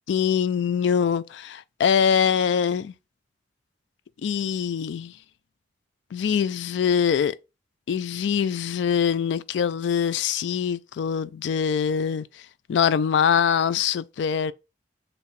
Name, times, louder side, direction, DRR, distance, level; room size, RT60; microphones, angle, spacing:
voice 1, 0.1-2.9 4.2-5.1 6.1-7.4 7.9-12.3 12.7-14.5, left 7 dB, 75° left, 0.3 m, -23 dB
4.5 x 2.6 x 3.2 m
head